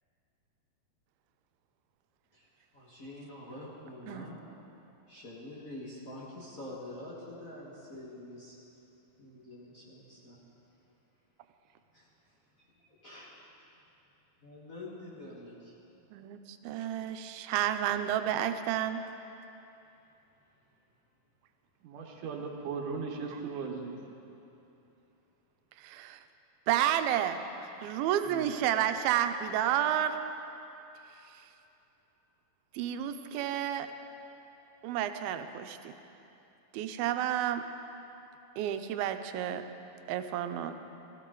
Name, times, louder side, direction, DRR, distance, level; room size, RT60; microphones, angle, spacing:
voice 1, 2.7-4.4 5.1-8.6 9.2-10.4 11.9-12.1 12.8-13.3 14.4-16.0 28.2-28.5, left 1 dB, 85° left, -7 dB, 0.7 m, -46 dB
voice 2, 16.1-19.0 23.3-23.4 25.8-26.2 26.7-30.2 31.3-31.4 32.7-33.9 34.8-36.0 36.7-37.6 38.6-39.6 40.1-40.7, right 11 dB, 90° right, 9 dB, 2.5 m, -31 dB
voice 3, 21.8-24.0, right 4 dB, 65° right, 0 dB, 2.6 m, -37 dB
16.0 x 15.5 x 3.8 m, 2.9 s
omnidirectional pair, 4.2 m